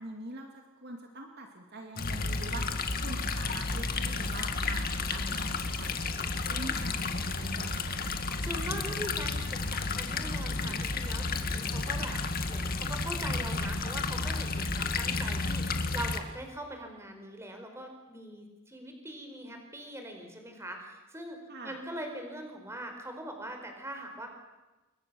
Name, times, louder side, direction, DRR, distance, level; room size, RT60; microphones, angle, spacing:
voice 1, 0.0-4.8 5.1-6.1 6.5-6.9 7.2-8.1 21.5-21.8, right 2 dB, 50° right, 3 dB, 2.6 m, -44 dB
sound 1, 2.0-16.2, left 3 dB, 45° left, 2.1 m, -32 dB
voice 2, 8.4-12.2 12.5-24.3, right 1 dB, 10° right, 4 dB, 4.9 m, -42 dB
28.5 x 23.0 x 7.1 m, 1.1 s
head